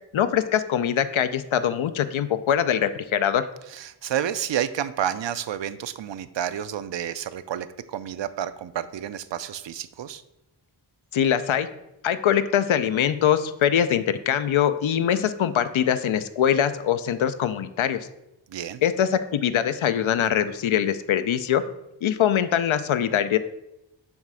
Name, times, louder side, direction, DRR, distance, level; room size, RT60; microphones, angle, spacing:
voice 1, 0.1-3.5 11.1-11.7 12.0-18.0 18.8-21.6 22.0-23.4, left 9 dB, 80° left, 11 dB, 0.6 m, -23 dB
voice 2, 3.7-10.2 18.5-18.8, right 10 dB, 65° right, 13 dB, 0.5 m, -30 dB
7.2 x 3.2 x 6.2 m, 0.89 s
wide cardioid pair, 85°, 47 cm